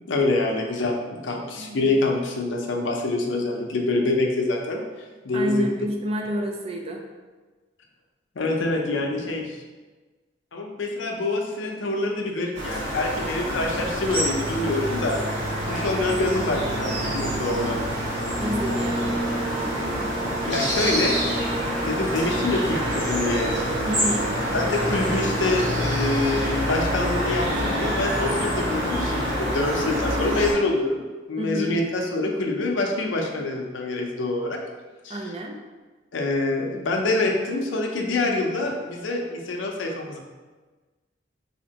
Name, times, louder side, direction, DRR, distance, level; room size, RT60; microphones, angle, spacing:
voice 1, 0.1-4.8 5.2-5.7 8.4-9.6 10.5-15.2 15.7-17.8 20.4-21.2 21.9-23.5 24.5-34.6 35.0-35.3 36.1-40.2, left 2 dB, 80° left, 1 dB, 0.6 m, -26 dB
voice 2, 1.6-1.9 5.3-7.0 18.4-19.2 23.9-24.3 31.4-31.8 35.1-35.6, equal, 30° right, 2 dB, 0.4 m, -29 dB
sound 1, 12.5-30.5, equal, 75° right, 1.5 m, -26 dB
4.2 x 2.8 x 2.8 m, 1.3 s
head